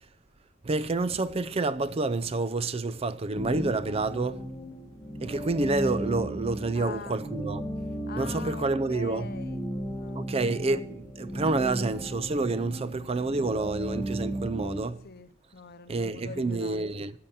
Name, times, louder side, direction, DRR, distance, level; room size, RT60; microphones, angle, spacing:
voice 1, 0.6-4.5 5.2-7.6 8.2-9.3 10.2-15.0 15.9-17.1, right 3 dB, 30° right, 0.5 m, -28 dB
sound 1, 3.3-14.8, right 1 dB, 15° left, 1.6 m, -36 dB
voice 2, 6.7-7.2 7.8-9.6 9.9-10.6 11.5-11.9 12.8-13.1 15.0-17.0, left 5 dB, 55° left, 0.8 m, -44 dB
11.0 x 6.8 x 7.1 m
head